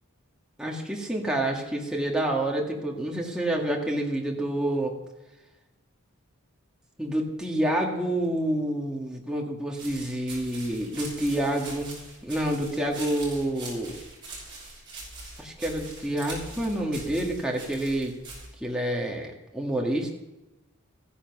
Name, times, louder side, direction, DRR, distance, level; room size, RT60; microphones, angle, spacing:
voice 1, 0.6-5.0 7.0-11.9 12.2-14.0 15.4-18.2 18.6-20.1, right 1 dB, 5° right, -1 dB, 1.9 m, -28 dB
sound 1, 9.8-18.5, right 2 dB, 20° right, 6.3 m, -42 dB
15.0 x 10.0 x 6.1 m, 1.0 s
head